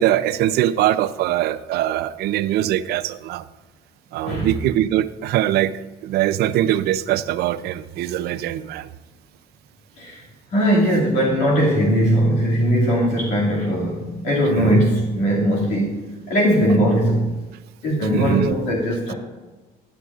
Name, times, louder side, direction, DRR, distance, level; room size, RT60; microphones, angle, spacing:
voice 1, 0.0-3.4 4.1-5.7 6.0-8.9 14.6-14.8 18.1-18.5, right 13 dB, 70° right, 14 dB, 0.4 m, -22 dB
voice 2, 10.5-16.0 16.3-17.3 17.8-19.1, equal, 90° left, -4 dB, 2.2 m, -19 dB
11.5 x 9.9 x 2.4 m, 1.2 s
cardioid pair, 110°, 17 cm